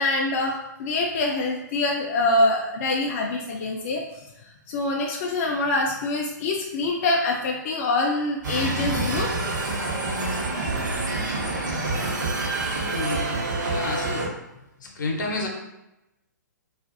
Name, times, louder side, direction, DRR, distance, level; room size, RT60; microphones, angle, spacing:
voice 1, 0.0-4.0 4.7-9.5, left 2 dB, 45° left, -1 dB, 0.3 m, -25 dB
sound 1, 8.4-14.3, right 2 dB, 70° right, 0.7 m, -27 dB
voice 2, 12.8-13.4 13.7-14.3 14.8-15.5, left 3 dB, 75° left, 0 dB, 0.7 m, -30 dB
2.5 x 2.4 x 2.5 m, 0.91 s
figure-of-eight pair, 125°, 10 cm